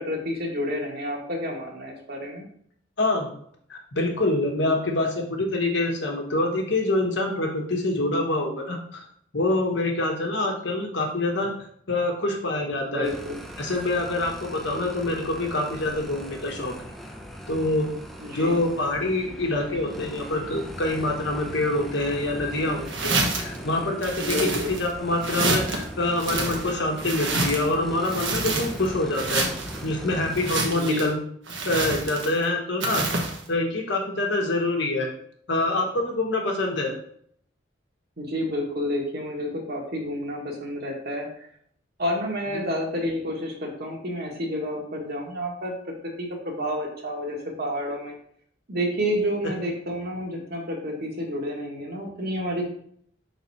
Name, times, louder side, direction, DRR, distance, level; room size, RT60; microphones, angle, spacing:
voice 1, 0.0-2.5 12.8-13.4 18.2-18.6 24.1-24.7 30.7-31.0 38.2-41.5 42.0-45.7 46.2-48.2 48.7-52.7, equal, 55° right, 0 dB, 1.6 m, -30 dB
voice 2, 3.0-3.3 3.7-9.0 9.3-11.5 11.9-13.1 13.6-16.7 17.5-17.9 18.3-29.5 29.8-31.2 31.6-35.1 35.5-37.0, left 2 dB, 65° left, 0 dB, 1.3 m, -26 dB
sound 1, 13.0-30.5, equal, ahead, 0.6 m, -39 dB
sound 2, 22.9-23.6 24.0-24.9 25.2-25.8 26.2-27.7 28.0-28.9 29.1-29.8 30.3-31.1 31.5-32.4 32.8-33.4, right 3 dB, 75° right, 1.1 m, -28 dB
6.0 x 4.0 x 4.1 m, 0.64 s
head